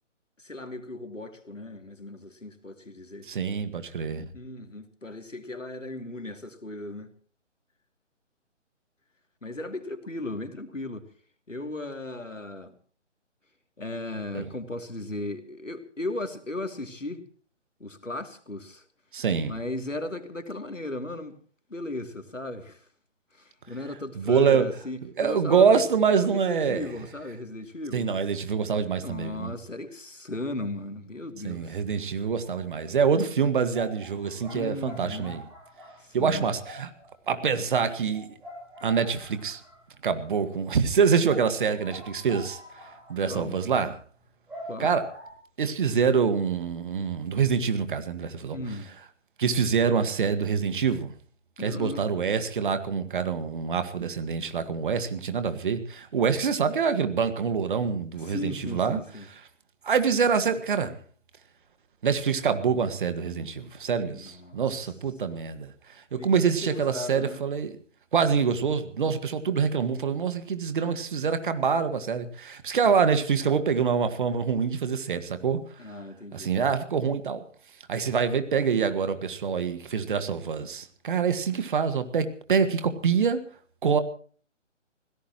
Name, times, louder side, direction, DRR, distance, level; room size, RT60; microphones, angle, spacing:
voice 1, 0.4-3.3 4.3-7.1 9.4-11.1 11.5-12.8 13.8-17.2 17.8-18.8 19.5-21.4 21.7-22.9 23.3-25.9 26.2-28.1 29.0-31.8 34.5-35.4 36.0-36.6 43.3-43.6 44.7-44.9 48.5-48.9 51.6-52.2 56.2-56.3 58.2-59.3 64.1-64.9 65.3-65.4 66.1-67.4 75.8-76.5, left 2 dB, 90° left, 7 dB, 2.8 m, -36 dB
voice 2, 3.3-4.3 14.3-14.5 19.1-19.5 24.2-24.7 25.2-26.8 27.9-29.5 31.4-35.4 36.1-36.9 37.3-38.3 38.8-39.6 40.0-42.6 43.1-43.9 44.8-45.0 45.6-48.6 49.4-51.1 51.6-59.0 59.8-61.0 62.0-65.7 66.1-67.7 68.1-75.6 76.3-77.4 77.9-83.4 83.8-84.0, right 6 dB, 40° right, 10 dB, 1.8 m, -25 dB
sound 1, 32.3-32.7 33.0-33.1 33.7-40.1 40.4-40.5 40.8-40.9 41.2-45.3, equal, 5° right, 6.0 m, -46 dB
25.5 x 17.0 x 3.1 m, 0.43 s
figure-of-eight pair, 145°, 37 cm